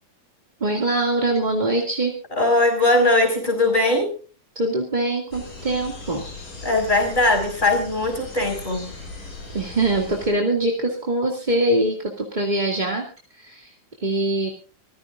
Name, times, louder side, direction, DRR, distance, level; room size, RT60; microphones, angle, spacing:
voice 1, 0.6-2.1 4.6-6.2 9.5-13.1 13.3-13.7 14.0-14.5, right 1 dB, 15° right, 0 dB, 1.9 m, -23 dB
voice 2, 2.4-4.1 6.6-8.9, left 2 dB, 15° left, 4 dB, 5.3 m, -20 dB
sound 1, 5.3-10.3, left 3 dB, 80° left, 8.2 m, -38 dB
25.0 x 15.5 x 2.6 m, 0.36 s
omnidirectional pair, 3.7 m